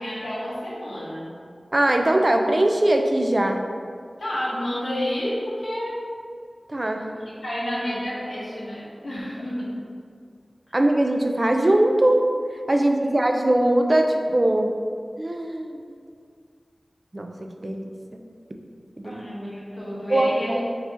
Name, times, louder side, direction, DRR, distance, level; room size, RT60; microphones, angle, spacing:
voice 1, 0.0-1.3 4.2-6.0 7.0-7.1 7.4-9.8 10.7-10.8 13.0-13.2 19.0-20.6, equal, 85° left, -9 dB, 1.4 m, -30 dB
voice 2, 1.7-3.6 6.7-7.1 10.7-12.2 12.7-14.7 15.2-15.8 17.1-18.2 19.0-19.2 20.1-20.6, right 1 dB, 40° right, 3 dB, 0.4 m, -21 dB
4.7 x 2.9 x 3.6 m, 2.1 s
wide cardioid pair, 70°, 0 cm